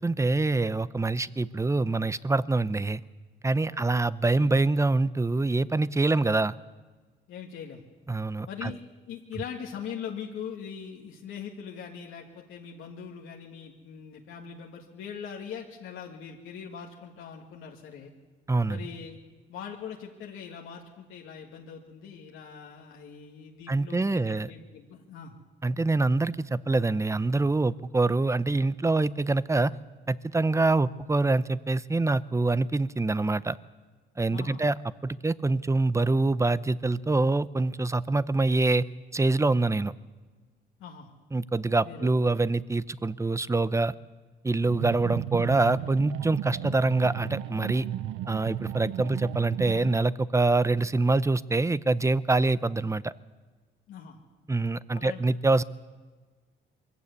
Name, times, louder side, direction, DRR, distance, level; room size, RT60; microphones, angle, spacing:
voice 1, 0.0-3.0 3.4-6.5 8.1-8.7 18.5-18.8 23.7-24.5 25.6-29.7 30.1-33.6 34.2-34.7 35.0-38.8 39.1-39.9 41.3-43.9 44.4-47.9 48.3-53.1 54.5-55.6, right 3 dB, 15° right, 17 dB, 0.6 m, -25 dB
voice 2, 7.3-7.8 8.5-8.8 9.1-18.1 18.7-19.2 19.5-25.3 34.3-34.6 40.8-41.1 41.8-42.1 48.8-48.9 53.9-54.2 54.9-55.2, left 7 dB, 85° left, -1 dB, 1.9 m, -41 dB
sound 1, 44.7-50.0, right 13 dB, 90° right, 0.5 m, -34 dB
22.5 x 15.5 x 8.3 m, 1.4 s
cardioid pair, 90°, 20 cm